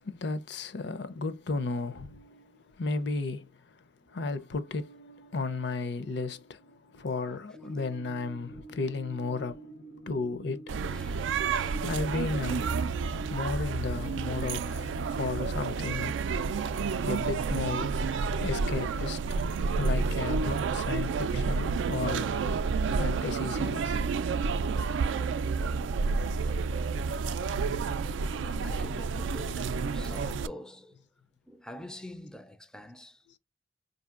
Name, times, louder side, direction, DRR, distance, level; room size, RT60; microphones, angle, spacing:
voice 1, 0.0-3.5 4.1-9.8 10.0-10.7 11.8-12.9 13.3-16.2 17.0-17.9 18.3-19.3 19.7-22.3 22.9-24.0 27.5-27.6, left 3 dB, 65° left, 0.6 m, -34 dB
voice 2, 7.2-7.8 10.9-11.9 24.7-26.1 28.4-31.0 31.5-33.3, left 1 dB, 5° left, 0.3 m, -47 dB
sound 1, 7.5-15.0, right 2 dB, 85° left, 1.1 m, -48 dB
sound 2, 10.7-30.5, right 4 dB, 80° right, 0.3 m, -30 dB
5.0 x 2.7 x 2.4 m
head